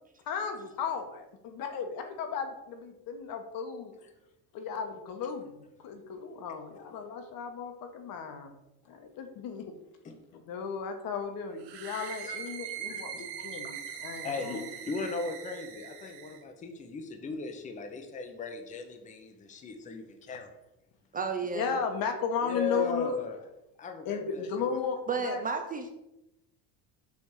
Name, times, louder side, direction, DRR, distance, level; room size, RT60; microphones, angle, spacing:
voice 1, 0.3-3.9 4.5-8.5 8.8-9.7 10.3-14.6 21.5-23.2 24.0-25.4, left 5 dB, 60° left, 6 dB, 1.2 m, -35 dB
sound 1, 11.6-16.4, right 9 dB, 85° right, 1.2 m, -41 dB
voice 2, 12.2-13.7 14.2-20.5 22.4-23.4 23.8-24.7, left 4 dB, 20° left, 5 dB, 0.7 m, -38 dB
voice 3, 21.1-21.8 25.1-25.9, right 5 dB, 20° right, 5 dB, 0.5 m, -32 dB
7.3 x 3.5 x 6.3 m, 0.90 s
cardioid pair, 160°, 40 cm